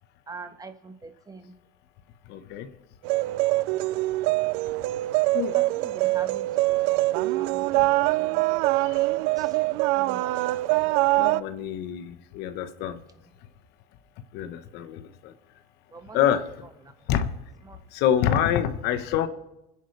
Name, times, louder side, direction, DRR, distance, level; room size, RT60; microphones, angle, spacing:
voice 1, 0.3-0.9 1.3-1.4 5.5-5.6 5.9-6.8 7.3-7.6 8.2-8.3 8.6-8.8 10.0-10.3 15.9-16.2 17.7-17.8, right 4 dB, 20° right, 8 dB, 1.5 m, -42 dB
voice 2, 2.3-2.7 5.3-5.5 7.7-7.9 8.8-9.0 11.1-13.0 14.3-15.3 16.1-16.7 17.1-17.3 17.9-19.3, left 10 dB, 65° left, 10 dB, 1.3 m, -26 dB
sound 1, 3.0-11.4, right 20 dB, 70° right, 0.5 m, -24 dB
27.5 x 10.5 x 3.4 m, 0.90 s
supercardioid pair, 90°, 18 cm